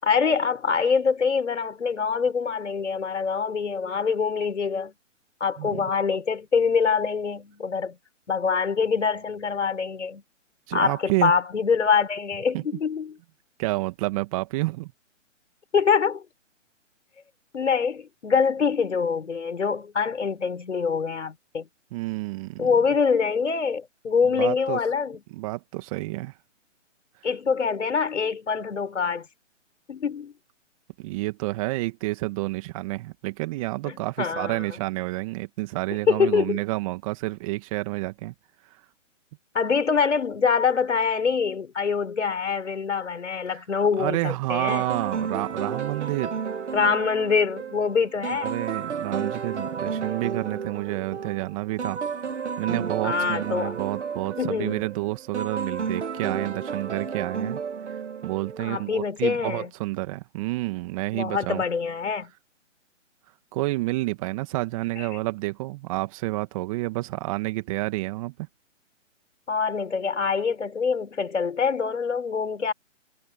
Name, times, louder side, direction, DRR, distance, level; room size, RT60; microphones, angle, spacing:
voice 1, 0.0-4.9 5.4-8.0 8.3-10.2 10.7-13.2 15.7-16.2 17.5-21.7 22.6-25.2 27.2-29.3 29.9-30.3 33.8-34.7 36.1-36.6 39.5-44.9 46.7-48.5 53.0-53.8 54.4-54.9 58.6-59.7 61.1-62.3 65.0-65.1 69.5-72.7, left 5 dB, 70° left, 5.9 m, -25 dB
voice 2, 10.7-11.3 12.5-12.6 13.6-14.9 21.9-22.7 24.3-24.8 25.3-26.3 31.0-38.3 43.5-43.6 44.0-46.4 48.3-52.0 52.6-57.6 58.2-61.6 63.5-68.3, right 21 dB, 25° right, 2.1 m, -29 dB
sound 1, 44.7-58.9, right 6 dB, 65° right, 2.7 m, -32 dB
figure-of-eight pair, 145°, 38 cm